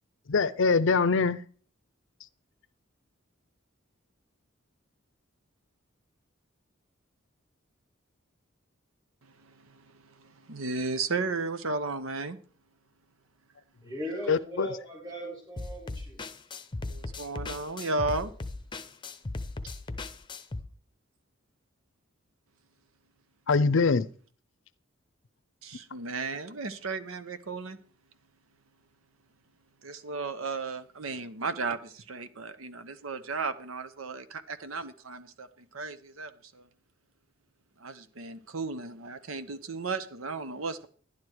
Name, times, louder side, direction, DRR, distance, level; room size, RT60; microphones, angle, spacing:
voice 1, 0.3-1.4 14.3-14.7 23.5-24.1, left 4 dB, 65° left, 0.6 m, -23 dB
voice 2, 9.2-12.4 16.7-18.3 25.6-27.8 29.8-36.7 37.8-40.9, right 3 dB, 85° right, 1.0 m, -35 dB
voice 3, 13.8-16.2, equal, 20° right, 7.6 m, -38 dB
sound 1, 15.6-20.6, left 2 dB, 25° left, 0.7 m, -37 dB
11.5 x 9.8 x 4.6 m
head